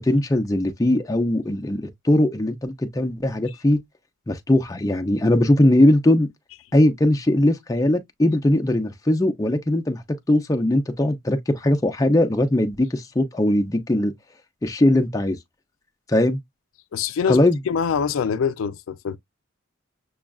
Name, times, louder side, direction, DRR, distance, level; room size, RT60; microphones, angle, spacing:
voice 1, 0.0-3.8 4.3-6.3 6.7-10.0 10.3-14.1 14.6-15.4 16.1-16.4 17.3-17.6, left 1 dB, 15° left, 0.5 m, -20 dB
voice 2, 16.9-19.2, left 6 dB, 80° left, 0.4 m, -24 dB
6.1 x 2.3 x 2.3 m
head